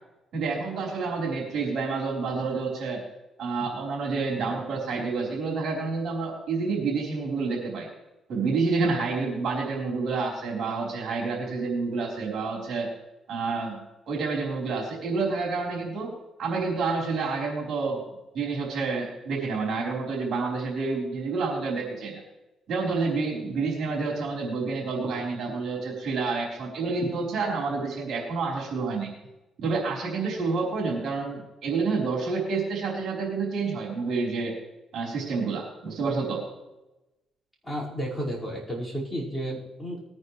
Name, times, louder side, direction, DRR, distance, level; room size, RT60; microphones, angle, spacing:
voice 1, 0.3-3.0 3.4-7.9 8.3-12.9 13.3-13.8 14.1-18.0 18.3-22.2 22.7-29.1 29.6-34.5 34.9-36.4, right 4 dB, 70° right, -2 dB, 4.2 m, -28 dB
voice 2, 37.6-40.0, equal, 5° left, -6 dB, 5.2 m, -32 dB
20.5 x 9.6 x 3.3 m, 0.99 s
cardioid pair, 90°, 0 cm